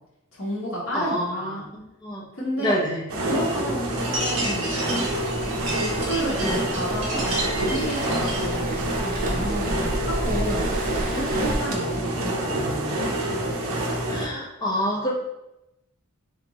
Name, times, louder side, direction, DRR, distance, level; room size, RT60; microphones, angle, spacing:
voice 1, 0.3-1.6 2.3-2.8 3.2-5.0 5.7-7.2 7.6-8.7 9.0-10.7 11.1-13.0, equal, 70° left, -7 dB, 1.4 m, -31 dB
voice 2, 0.9-2.2 2.6-3.0 14.1-15.1, equal, 20° left, -3 dB, 0.7 m, -27 dB
sound 1, 3.1-14.3, right 1 dB, 80° right, 0.7 m, -27 dB
sound 2, 4.0-8.6, right 1 dB, 65° right, 1.1 m, -32 dB
Waves surf, 5.0-11.5, right 1 dB, 40° right, 0.5 m, -33 dB
3.7 x 3.5 x 2.9 m, 0.90 s
head